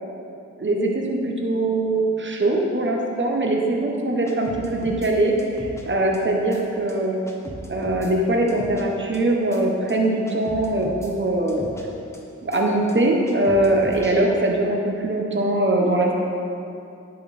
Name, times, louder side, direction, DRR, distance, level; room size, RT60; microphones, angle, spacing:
voice 1, 0.6-7.2 7.7-11.6 12.4-16.1, right 1 dB, 40° right, 0 dB, 1.2 m, -22 dB
sound 1, 4.3-5.1 5.4-5.8 6.1-6.2 6.5-6.6 6.9-7.0 7.3-8.1 8.5-8.8 9.1-9.2 9.5-9.6 9.9-10.0 10.3-11.1 11.5-11.8 12.1-12.2 12.5-12.6 12.9-13.0 13.3-14.2, right 1 dB, 10° left, 1.4 m, -37 dB
10.5 x 5.5 x 4.3 m, 2.6 s
cardioid pair, 45°, 31 cm